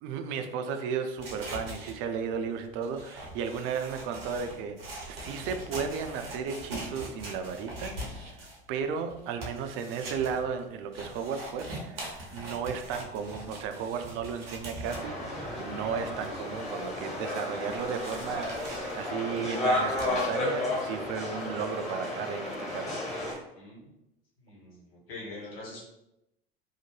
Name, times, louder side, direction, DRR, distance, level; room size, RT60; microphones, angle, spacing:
voice 1, 0.0-23.0, right 6 dB, 45° right, 7 dB, 0.4 m, -34 dB
sound 1, 1.2-15.3 15.8-15.9 16.1-17.2 17.6-20.3, right 1 dB, 80° right, 0.8 m, -42 dB
sound 2, 14.9-23.3, left 1 dB, 20° left, 1.4 m, -33 dB
voice 2, 23.5-23.9 24.4-25.8, left 2 dB, 75° left, -5 dB, 1.4 m, -44 dB
2.7 x 2.0 x 3.1 m, 0.88 s
figure-of-eight pair, 70°, 29 cm